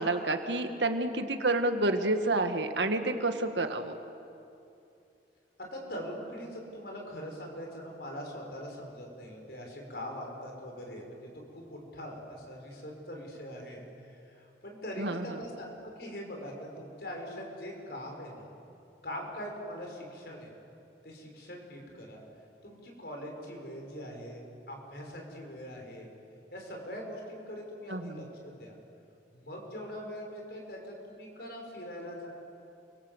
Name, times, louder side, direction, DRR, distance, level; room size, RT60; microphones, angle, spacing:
voice 1, 0.0-4.0 15.0-15.4 27.9-28.3, right 2 dB, 90° right, 7 dB, 1.8 m, -29 dB
voice 2, 5.6-18.5 19.0-20.5 21.0-22.2 22.6-26.1 26.5-28.7 29.3-32.3, equal, 60° left, 1 dB, 5.9 m, -42 dB
29.5 x 24.0 x 8.1 m, 2.6 s
head